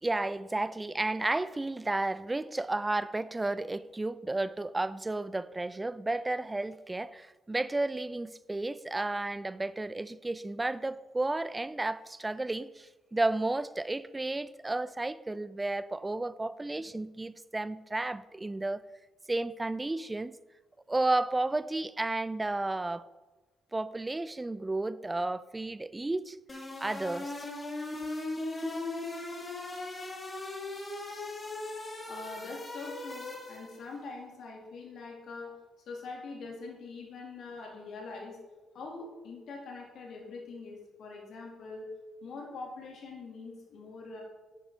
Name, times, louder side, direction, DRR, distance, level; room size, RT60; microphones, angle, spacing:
voice 1, 0.0-18.9 19.3-20.4 20.9-23.0 23.7-26.4 26.8-27.5, right 2 dB, 15° right, 16 dB, 0.5 m, -32 dB
sound 1, 26.5-33.9, left 2 dB, 25° left, 2.3 m, -38 dB
voice 2, 32.1-35.5 35.9-38.4 38.7-41.9 42.2-44.2, left 3 dB, 55° left, 0 dB, 2.8 m, -43 dB
11.0 x 10.0 x 3.8 m, 1.1 s
figure-of-eight pair, 40°, 0 cm